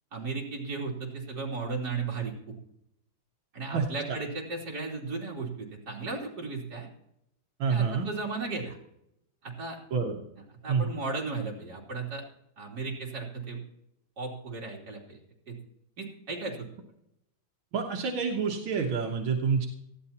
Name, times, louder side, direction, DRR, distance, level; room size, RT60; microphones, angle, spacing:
voice 1, 0.1-2.5 3.5-6.9 7.7-8.8 9.4-9.8 10.6-12.2 12.6-13.6 14.2-15.2 15.5-15.6 16.0-16.7, right 4 dB, 55° right, -2 dB, 3.7 m, -35 dB
voice 2, 3.7-4.2 7.6-8.1 9.9-10.2 10.7-10.9 17.7-19.7, right 5 dB, 85° right, 1 dB, 2.0 m, -28 dB
18.5 x 14.5 x 2.9 m, 0.79 s
omnidirectional pair, 2.2 m